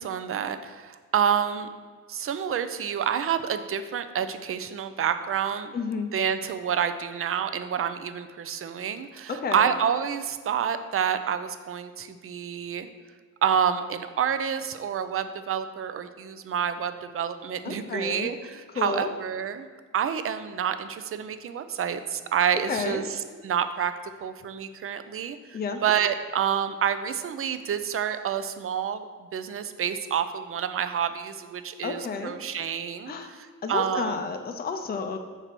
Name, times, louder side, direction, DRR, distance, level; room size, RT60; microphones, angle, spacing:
voice 1, 0.0-1.7 2.1-5.7 6.1-12.9 13.4-19.7 19.9-23.0 23.4-23.9 24.2-34.2, right 8 dB, 45° right, 10 dB, 0.5 m, -28 dB
voice 2, 5.7-6.1 9.3-9.7 17.6-18.3 18.8-19.1 22.7-23.0 25.5-25.8 31.8-32.4 33.1-33.3 33.6-35.2, left 5 dB, 30° left, 6 dB, 0.5 m, -31 dB
6.6 x 4.6 x 5.9 m, 1.5 s
wide cardioid pair, 145°, 32 cm